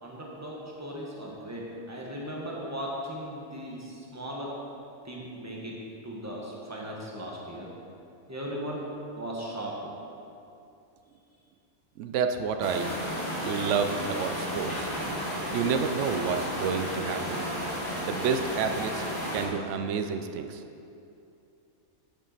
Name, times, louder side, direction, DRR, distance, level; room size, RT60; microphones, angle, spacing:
voice 1, 0.0-4.5 5.0-5.8 6.0-7.7 8.3-8.8 9.2-9.7, equal, 10° right, -3 dB, 1.1 m, -37 dB
voice 2, 12.0-12.9 13.4-14.9 15.5-17.4 18.0-19.0 19.3-20.6, right 6 dB, 65° right, 7 dB, 0.8 m, -29 dB
sound 1, 12.6-19.5, equal, 15° left, 1.4 m, -33 dB
7.4 x 7.2 x 4.0 m, 2.7 s
omnidirectional pair, 1.5 m